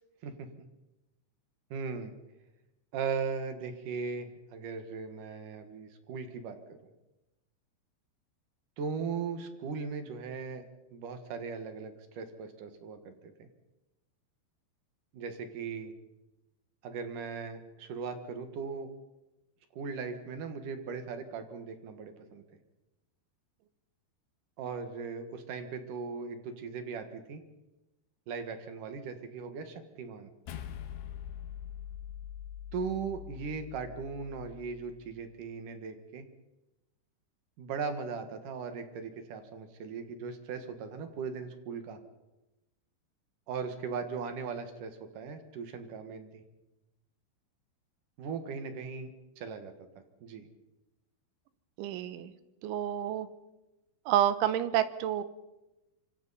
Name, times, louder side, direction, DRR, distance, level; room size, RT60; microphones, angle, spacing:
voice 1, 1.7-2.1 2.9-6.8 8.8-10.6 10.9-13.1 15.1-15.9 16.8-18.9 19.7-22.4 24.6-27.4 28.3-30.3 32.7-36.2 37.6-42.0 43.5-46.4 48.2-49.9 50.2-50.5, right 5 dB, 60° right, 7 dB, 2.6 m, -38 dB
sound 1, 30.5-35.0, left 10 dB, 80° left, 3.4 m, -43 dB
voice 2, 51.8-52.3 52.6-53.3 54.1-55.2, right 11 dB, 90° right, 12 dB, 3.4 m, -29 dB
26.0 x 25.5 x 4.2 m, 0.99 s
omnidirectional pair, 5.3 m